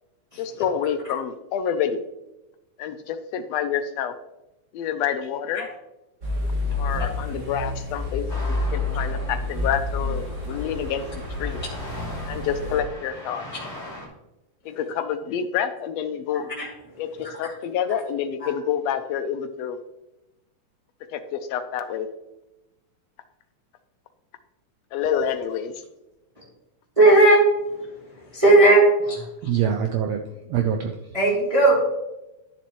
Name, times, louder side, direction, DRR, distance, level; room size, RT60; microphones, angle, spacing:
voice 1, 0.4-2.0 2.8-4.1 4.7-5.7 6.8-11.0 11.4-11.6 12.3-13.4 14.6-16.5 17.0-19.8 21.1-22.1 24.9-25.7, left 8 dB, 80° left, 9 dB, 1.5 m, -28 dB
sound 1, 6.2-12.8, left 2 dB, 30° right, 1.6 m, -29 dB
sound 2, 8.3-14.1, left 1 dB, 20° left, 3.1 m, -40 dB
voice 2, 27.0-27.4 28.3-29.2 31.1-31.8, right 2 dB, 10° right, -7 dB, 2.5 m, -16 dB
voice 3, 29.4-30.9, right 8 dB, 80° right, 5 dB, 1.5 m, -24 dB
11.5 x 7.0 x 3.1 m, 0.94 s
omnidirectional pair, 3.6 m